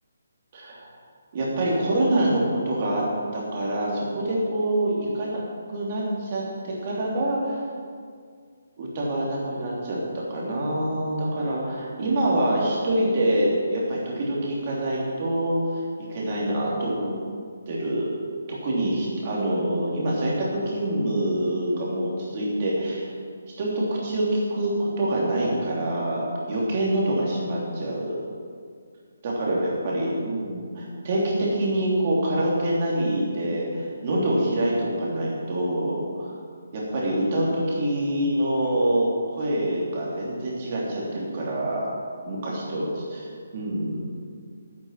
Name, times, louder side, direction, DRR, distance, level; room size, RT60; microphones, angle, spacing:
voice 1, 0.5-0.9 1.3-3.0 3.3-5.4 5.7-7.6 8.8-15.8 16.1-17.1 17.7-18.1 18.5-23.1 23.6-28.2 29.2-36.3 36.7-41.9 42.3-44.1, right 1 dB, 30° right, -4 dB, 3.0 m, -26 dB
9.8 x 8.9 x 7.5 m, 2.1 s
hypercardioid pair, 175°, 0 cm